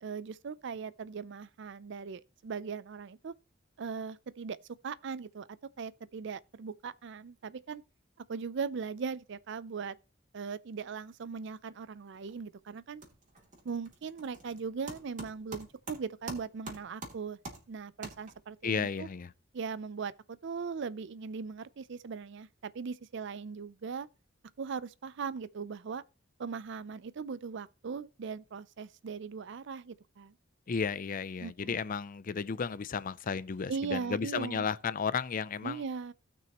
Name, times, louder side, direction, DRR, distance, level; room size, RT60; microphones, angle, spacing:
voice 1, 0.0-3.3 3.8-4.6 4.8-5.5 5.8-7.8 8.2-10.0 10.3-13.0 13.6-17.4 17.7-19.1 19.5-20.1 20.4-24.1 24.6-26.0 26.4-30.3 31.4-31.8 33.7-34.7 35.6-36.1, right 5 dB, 65° right, 0.5 m, -39 dB
sound 1, 12.1-12.5 12.8-18.6, right 2 dB, 40° right, 2.8 m, -47 dB
voice 2, 18.6-19.3 30.7-35.8, left 5 dB, 45° left, 0.5 m, -33 dB
17.0 x 6.1 x 3.0 m
head